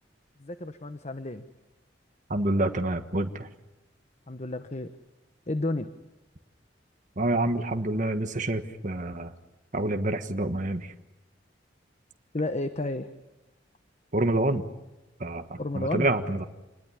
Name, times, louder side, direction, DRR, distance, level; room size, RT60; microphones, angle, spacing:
voice 1, 0.4-1.4 4.3-4.9 5.5-5.9 12.3-13.1 15.6-16.1, left 2 dB, 40° left, 10 dB, 1.1 m, -31 dB
voice 2, 2.3-3.5 7.2-9.3 9.7-10.9 14.1-14.6 15.2-16.4, right 2 dB, 45° right, 6 dB, 1.5 m, -27 dB
28.0 x 20.5 x 9.9 m, 1.0 s
head